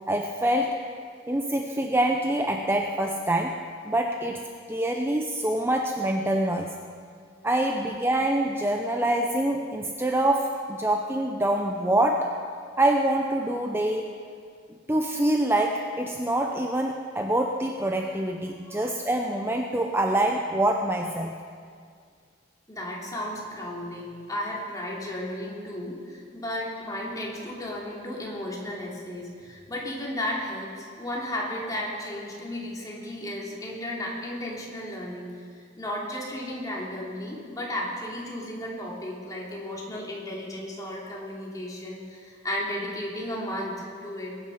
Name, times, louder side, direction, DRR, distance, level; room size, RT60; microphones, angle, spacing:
voice 1, 0.1-0.8 1.3-3.6 3.8-6.7 7.4-12.3 12.8-14.1 14.9-21.3, right 1 dB, 15° right, 3 dB, 0.7 m, -25 dB
voice 2, 22.7-35.3 35.8-44.3, left 1 dB, 20° left, -4 dB, 3.0 m, -34 dB
21.5 x 9.7 x 5.7 m, 2.1 s
head